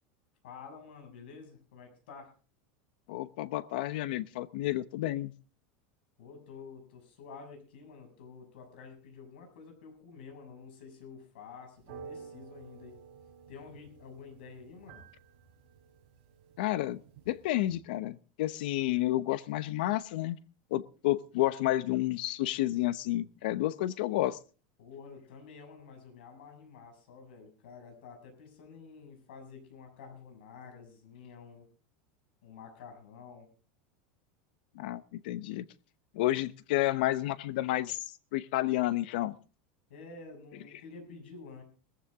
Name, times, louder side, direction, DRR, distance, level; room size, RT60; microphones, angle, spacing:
voice 1, 0.4-2.3 6.2-13.0 13.5-15.0 24.8-31.7 32.4-33.5 39.9-41.6, left 5 dB, 85° left, 4 dB, 6.7 m, -49 dB
voice 2, 3.1-5.3 16.6-17.0 17.3-20.4 20.7-24.4 34.7-35.6 36.1-38.0 38.3-39.4, left 15 dB, 65° left, 17 dB, 0.9 m, -30 dB
sound 1, 11.8-17.8, right 6 dB, 55° right, 3.9 m, -52 dB
18.5 x 14.5 x 3.7 m, 0.37 s
supercardioid pair, 175°, 5 cm